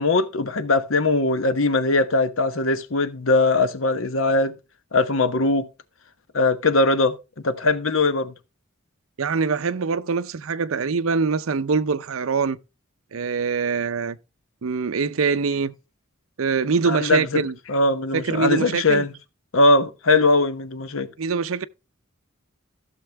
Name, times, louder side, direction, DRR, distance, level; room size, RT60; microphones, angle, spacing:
voice 1, 0.0-4.5 4.9-5.7 6.3-7.1 7.4-8.3 16.8-17.4 17.7-19.1 19.5-21.1, left 2 dB, 75° left, 1.0 m, -20 dB
voice 2, 9.2-12.6 13.1-14.2 14.6-15.7 16.4-17.5 18.1-19.1 21.2-21.7, right 5 dB, 85° right, 0.6 m, -24 dB
15.0 x 6.7 x 3.4 m
head